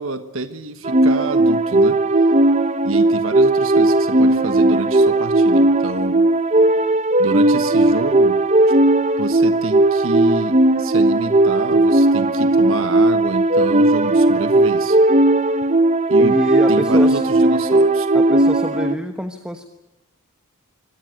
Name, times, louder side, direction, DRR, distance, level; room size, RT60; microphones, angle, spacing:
voice 1, 0.0-2.0 2.8-6.3 7.2-8.4 8.7-8.8 9.2-15.0 16.1-16.4 16.7-18.1, right 2 dB, 65° right, 9 dB, 1.4 m, -28 dB
sound 1, 0.8-19.0, right 2 dB, 30° right, 0.9 m, -16 dB
voice 2, 16.2-17.2 18.1-19.6, equal, 5° right, 6 dB, 1.2 m, -25 dB
25.0 x 18.0 x 9.3 m, 1.0 s
head